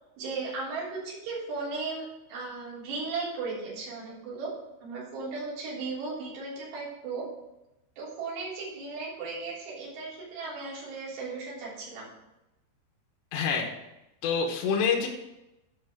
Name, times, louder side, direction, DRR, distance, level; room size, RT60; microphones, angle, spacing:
voice 1, 0.2-4.5 4.8-7.2 8.0-12.1, right 4 dB, 70° right, -7 dB, 5.6 m, -36 dB
voice 2, 13.3-13.7 14.2-15.1, left 6 dB, 80° left, 0 dB, 3.4 m, -26 dB
11.5 x 5.4 x 6.1 m, 0.93 s
omnidirectional pair, 5.2 m